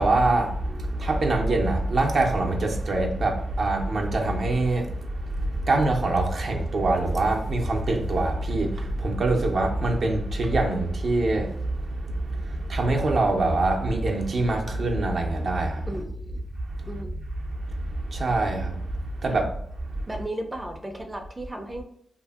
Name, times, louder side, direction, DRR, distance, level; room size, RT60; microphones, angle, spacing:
voice 1, 0.0-15.9 16.8-17.0 17.9-19.5, right 2 dB, 65° right, 0.6 m, -24 dB
voice 2, 15.9-16.5 16.9-17.2 19.3-19.4 20.1-21.8, right 1 dB, 15° right, 0.4 m, -35 dB
2.6 x 2.6 x 2.4 m
cardioid pair, 70°, 0 cm